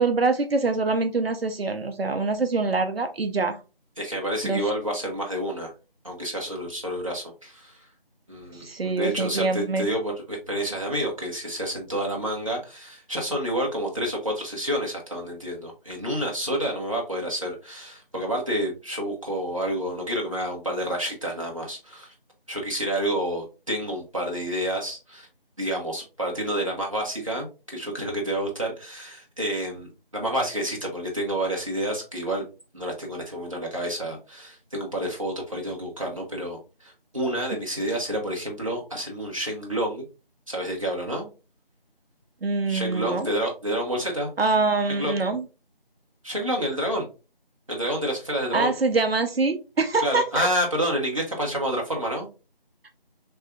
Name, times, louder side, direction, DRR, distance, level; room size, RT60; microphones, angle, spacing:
voice 1, 0.0-3.6 4.4-4.6 8.5-9.9 42.4-43.3 44.4-45.4 48.5-50.5 52.8-52.9, right 3 dB, 80° right, 7 dB, 0.6 m, -24 dB
voice 2, 4.0-5.7 6.0-7.8 8.3-22.1 22.5-25.3 25.6-32.4 32.7-40.0 40.5-41.3 42.7-44.3 44.9-45.2 46.2-47.1 47.7-48.7 50.0-52.3, equal, 35° right, -2 dB, 0.9 m, -29 dB
3.4 x 3.4 x 2.2 m, 0.30 s
figure-of-eight pair, 170°, 30 cm